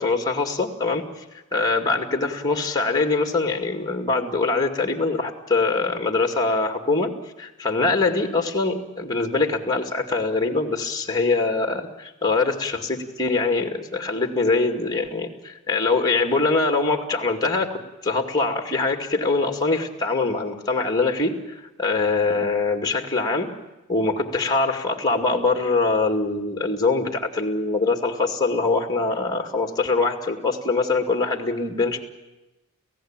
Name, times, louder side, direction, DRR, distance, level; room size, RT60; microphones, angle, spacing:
voice 1, 0.0-1.2 1.5-7.1 7.4-23.5 23.9-32.0, left 3 dB, 20° left, 4 dB, 2.2 m, -23 dB
30.0 x 15.5 x 8.9 m, 1.0 s
head